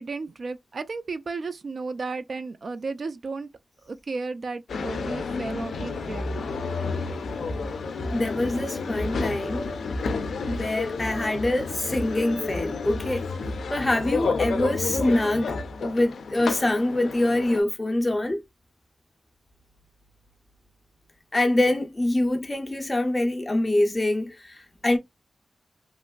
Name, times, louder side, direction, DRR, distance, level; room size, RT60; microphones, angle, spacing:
voice 1, 0.0-3.5 3.8-6.3, right 4 dB, 50° right, 0.3 m, -33 dB
sound 1, 4.7-17.6, left 4 dB, 85° left, 0.4 m, -30 dB
voice 2, 8.1-9.7 10.5-13.2 13.7-18.4 21.3-25.0, left 1 dB, 20° left, 0.5 m, -25 dB
2.9 x 2.5 x 2.2 m
wide cardioid pair, 150°, 0 cm